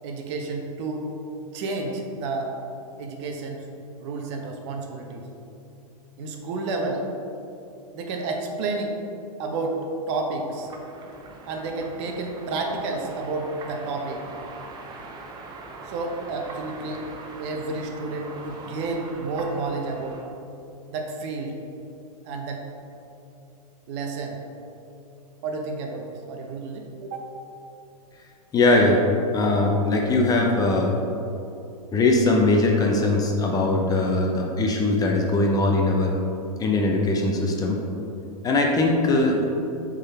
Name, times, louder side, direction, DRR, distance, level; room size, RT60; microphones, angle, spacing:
voice 1, 0.0-1.1 1.5-2.5 3.0-3.7 4.0-5.3 6.2-7.1 7.9-9.0 9.4-9.8 10.1-10.7 11.5-14.3 15.8-17.0 17.4-20.2 20.9-21.6 22.2-22.6 23.9-24.4 25.4-27.2, right 3 dB, 50° right, 2 dB, 0.9 m, -30 dB
sound 1, 10.4-20.2, right 3 dB, 20° right, 0.7 m, -42 dB
voice 2, 28.5-29.0 29.3-30.9 31.9-36.1 36.6-37.8 38.4-39.4, left 2 dB, 20° left, 0 dB, 0.7 m, -21 dB
6.4 x 3.9 x 4.3 m, 2.8 s
hypercardioid pair, 120°, 19 cm